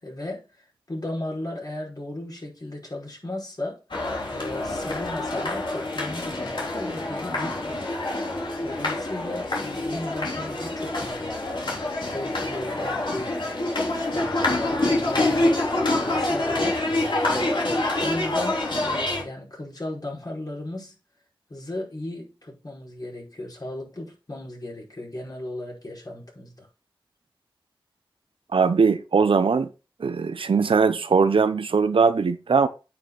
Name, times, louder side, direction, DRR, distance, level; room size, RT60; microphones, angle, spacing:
voice 1, 0.0-3.8 4.3-7.9 8.6-13.5 13.9-17.0 17.3-21.0 21.5-26.7, left 1 dB, 45° left, 5.1 m, -36 dB
sound 1, 3.9-19.2, left 2 dB, 65° left, 3.5 m, -26 dB
voice 2, 28.5-29.7 30.0-32.7, right 5 dB, 85° right, 0.7 m, -20 dB
8.8 x 6.1 x 4.0 m
cardioid pair, 45°, 9 cm